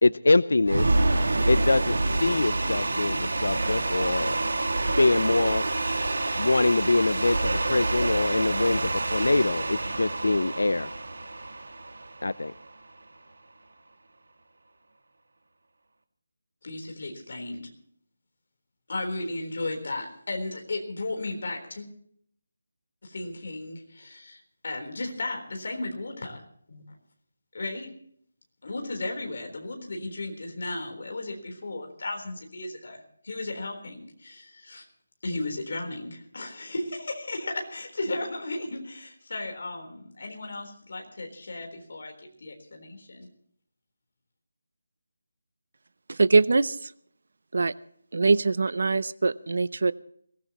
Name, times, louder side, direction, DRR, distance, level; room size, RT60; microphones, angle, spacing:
voice 1, 0.0-1.1 1.5-4.4 5.0-5.6 6.3-10.9 12.2-12.5, left 2 dB, 75° left, 17 dB, 0.6 m, -24 dB
sound 1, 0.6-12.8, right 2 dB, 80° right, 2.1 m, -27 dB
voice 2, 16.6-17.7 18.9-21.9 23.0-26.4 26.7-27.0 27.5-27.9 28.6-34.8 35.2-42.1 42.4-43.3, left 2 dB, 40° left, 3 dB, 3.9 m, -35 dB
voice 3, 46.1-46.9 47.5-47.7 48.1-49.9, right 3 dB, 45° right, 19 dB, 0.6 m, -23 dB
22.0 x 18.5 x 3.0 m, 0.64 s
figure-of-eight pair, 180°, 0 cm